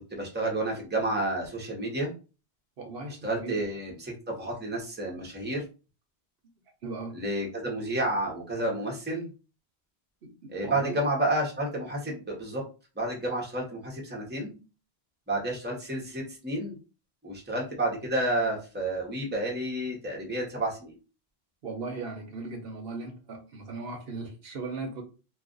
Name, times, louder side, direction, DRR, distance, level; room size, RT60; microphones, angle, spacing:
voice 1, 0.1-2.1 3.2-5.6 7.1-9.3 10.5-12.6 13.0-14.6 15.3-16.8 17.2-21.0, right 1 dB, 10° right, -2 dB, 0.8 m, -30 dB
voice 2, 2.8-3.6 6.8-7.2 10.2-11.0 21.6-25.0, right 3 dB, 70° right, 3 dB, 0.9 m, -38 dB
2.4 x 2.3 x 3.7 m, 0.33 s
omnidirectional pair, 1.1 m